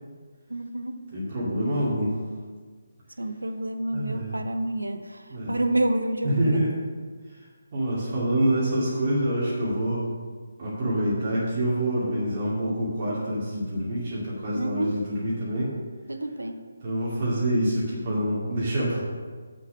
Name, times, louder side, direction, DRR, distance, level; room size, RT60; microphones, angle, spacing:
voice 1, 0.5-1.0 3.2-6.6 14.6-14.9 16.1-16.6, right 1 dB, 75° right, 8 dB, 0.9 m, -28 dB
voice 2, 1.1-2.1 3.9-4.3 5.3-5.6 6.2-6.7 7.7-10.1 10.6-15.7 16.8-19.0, right 1 dB, 35° right, -7 dB, 2.3 m, -26 dB
7.7 x 6.2 x 6.2 m, 1.5 s
figure-of-eight pair, 145°, 0 cm